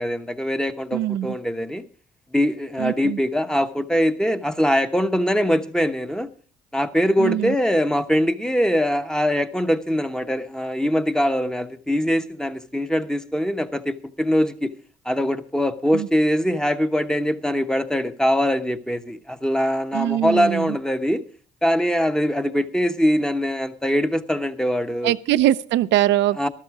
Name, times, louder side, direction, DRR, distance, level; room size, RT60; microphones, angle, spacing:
voice 1, 0.0-1.8 2.3-6.3 6.7-14.7 15.0-21.2 21.6-25.1 26.4-26.5, equal, 5° left, 9 dB, 1.0 m, -22 dB
voice 2, 0.9-1.3 2.8-3.2 7.2-7.5 15.9-16.1 19.9-20.8 25.0-26.5, right 13 dB, 80° right, 14 dB, 0.6 m, -22 dB
13.0 x 12.5 x 4.9 m, 0.40 s
cardioid pair, 85°, 18 cm